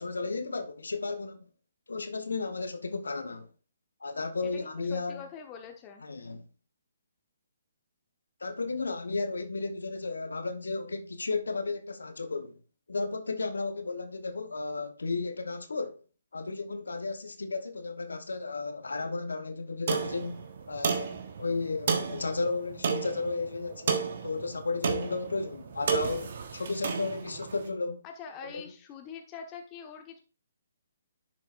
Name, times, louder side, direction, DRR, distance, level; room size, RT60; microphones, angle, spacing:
voice 1, 0.0-1.5 1.9-3.5 4.0-5.2 6.0-6.5 8.4-12.6 12.9-16.0 16.3-28.0 28.5-28.6, left 3 dB, 70° left, 1.1 m, -34 dB
voice 2, 4.4-6.0 28.0-30.2, left 6 dB, 25° left, 1.1 m, -44 dB
sound 1, 19.9-27.6, right 6 dB, 50° right, 1.3 m, -33 dB
10.5 x 6.6 x 2.5 m
figure-of-eight pair, 135°, 0 cm